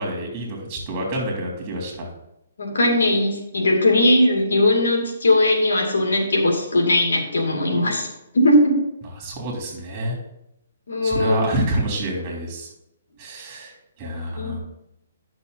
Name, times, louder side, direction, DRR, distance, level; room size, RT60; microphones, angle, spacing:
voice 1, 0.0-2.1 9.2-10.2 11.0-12.7 13.2-13.7 14.0-14.6, right 1 dB, 25° right, -1 dB, 2.9 m, -27 dB
voice 2, 2.6-8.1 8.3-8.8 10.9-11.3 14.3-14.6, left 1 dB, 85° left, 1 dB, 2.5 m, -19 dB
10.5 x 6.1 x 4.0 m, 0.84 s
hypercardioid pair, 160°, 0 cm